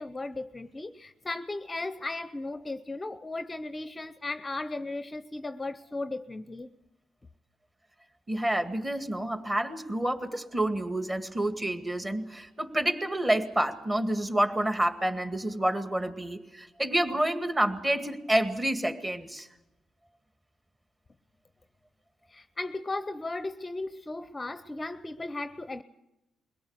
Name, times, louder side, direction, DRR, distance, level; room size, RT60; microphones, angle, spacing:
voice 1, 0.0-6.7 22.3-25.8, left 2 dB, 20° left, 0.7 m, -36 dB
voice 2, 8.3-19.5, right 1 dB, 20° right, 2.1 m, -28 dB
22.5 x 18.0 x 8.2 m
cardioid pair, 90°, 0 cm